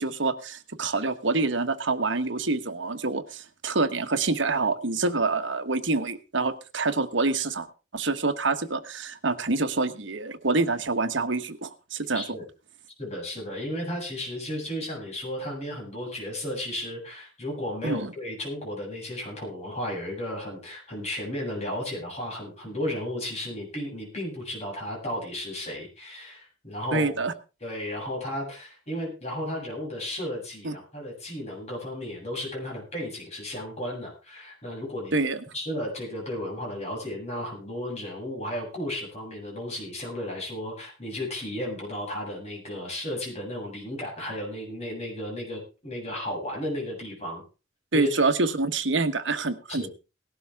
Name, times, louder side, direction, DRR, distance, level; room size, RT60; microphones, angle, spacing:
voice 1, 0.0-7.7 7.9-12.2 17.8-18.1 26.9-27.3 30.6-30.7 35.1-35.4 47.9-49.9, right 3 dB, 65° right, 9 dB, 1.3 m, -26 dB
voice 2, 12.1-12.4 13.0-27.1 27.6-35.1 35.5-47.4 47.9-48.1 49.7-49.9, left 1 dB, 35° left, -2 dB, 7.8 m, -34 dB
18.5 x 12.0 x 3.5 m, 0.32 s
head